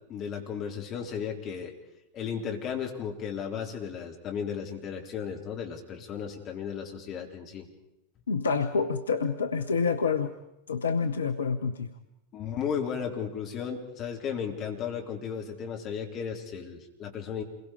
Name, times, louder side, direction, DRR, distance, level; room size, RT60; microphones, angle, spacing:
voice 1, 0.1-1.7 2.1-7.7 12.3-17.4, left 7 dB, 30° left, 1 dB, 3.8 m, -35 dB
voice 2, 8.3-10.3 10.7-11.9, left 5 dB, 70° left, 7 dB, 1.0 m, -27 dB
28.5 x 22.0 x 5.2 m, 0.88 s
figure-of-eight pair, 90°, 0 cm